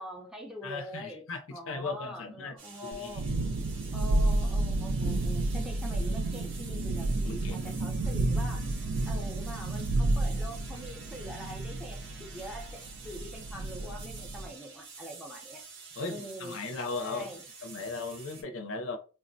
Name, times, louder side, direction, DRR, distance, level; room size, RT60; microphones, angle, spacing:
voice 1, 0.0-1.2 1.5-3.3 3.9-8.7 9.1-15.6 16.1-16.6 17.0-17.4, equal, ahead, 0.5 m, -44 dB
voice 2, 0.6-2.5 2.8-3.2 7.2-7.7 16.0-17.3 17.6-19.0, left 3 dB, 60° left, 0.5 m, -37 dB
sound 1, 2.6-18.4, right 5 dB, 55° right, 0.9 m, -49 dB
Thunderstorm, 2.9-14.5, right 2 dB, 75° right, 0.4 m, -31 dB
3.4 x 2.1 x 2.5 m
head